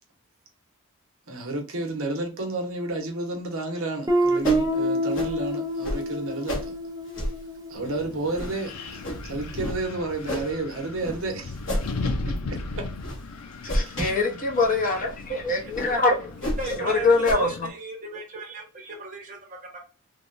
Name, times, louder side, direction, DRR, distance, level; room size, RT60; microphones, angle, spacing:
voice 1, 1.3-6.7 7.7-11.6 12.0-12.9 13.8-14.0, right 2 dB, 65° right, 0.9 m, -31 dB
Guitar, 4.1-8.7, right 1 dB, 15° right, 0.6 m, -27 dB
sound 1, 4.4-4.7 5.1-5.3 5.8-6.0 6.5-6.7 7.1-7.4 7.9-8.0 8.3-8.5 9.0-9.2 9.6-9.8 10.2-10.5 11.0-11.2 11.6-11.9 12.4-12.6 13.0-13.2 13.7-14.2 14.6-14.7 15.1-15.2 15.7-15.9 16.4-16.8 17.2-17.3, equal, 60° left, 1.2 m, -29 dB
Wind, 7.8-17.7, left 3 dB, 85° left, 0.5 m, -36 dB
voice 2, 13.6-16.4 16.8-17.7, left 3 dB, 35° left, 0.8 m, -24 dB
voice 3, 15.6-16.0 16.6-19.8, right 3 dB, 35° right, 1.0 m, -36 dB
3.4 x 2.2 x 2.5 m
head